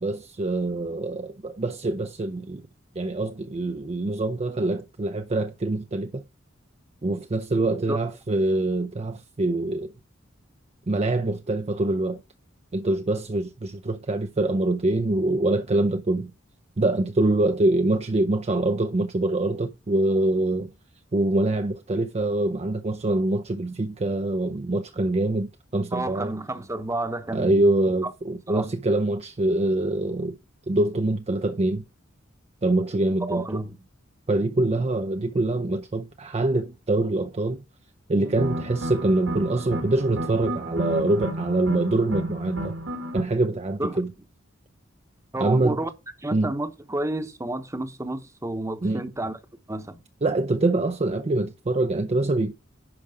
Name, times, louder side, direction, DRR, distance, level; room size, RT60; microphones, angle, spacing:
voice 1, 0.0-2.6 3.0-6.2 7.0-9.9 10.9-12.2 12.7-16.3 16.8-20.7 21.1-26.3 27.3-30.4 30.7-31.8 32.6-33.6 34.3-37.6 38.1-42.8 43.1-44.1 45.4-45.8 46.3-46.5 48.8-49.0 50.2-52.5, right 2 dB, 30° right, 0.5 m, -24 dB
voice 2, 25.9-27.5 28.5-28.7 33.3-33.8 43.8-44.0 45.3-45.9 46.2-49.4 49.7-50.0, right 1 dB, 15° right, 0.9 m, -30 dB
sound 1, 38.2-43.2, right 1 dB, 85° right, 2.6 m, -32 dB
10.5 x 5.0 x 4.9 m
head